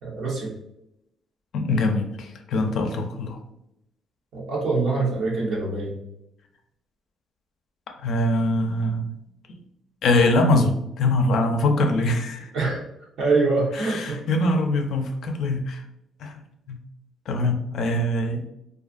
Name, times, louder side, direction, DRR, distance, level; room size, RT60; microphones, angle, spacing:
voice 1, 0.0-0.5 4.3-6.0 12.5-12.8 13.2-14.2, right 3 dB, 75° right, -3 dB, 0.8 m, -24 dB
voice 2, 1.5-3.4 8.0-9.1 9.5-9.6 10.0-12.5 13.7-15.8 16.2-16.8 17.3-18.4, left 2 dB, 70° left, 4 dB, 0.4 m, -23 dB
2.4 x 2.3 x 2.4 m, 0.82 s
cardioid pair, 90°, 0 cm